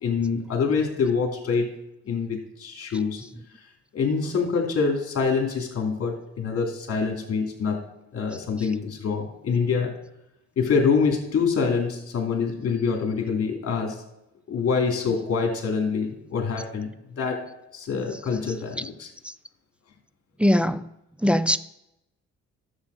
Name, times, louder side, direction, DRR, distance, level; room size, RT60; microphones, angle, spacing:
voice 1, 0.0-1.7 2.1-3.3 3.9-9.9 10.6-14.0 14.5-17.5 17.7-19.1, left 5 dB, 50° left, 4 dB, 2.6 m, -25 dB
voice 2, 20.4-20.8 21.2-21.6, equal, 5° right, 11 dB, 0.4 m, -20 dB
11.0 x 7.3 x 4.8 m, 0.85 s
cardioid pair, 90°, 30 cm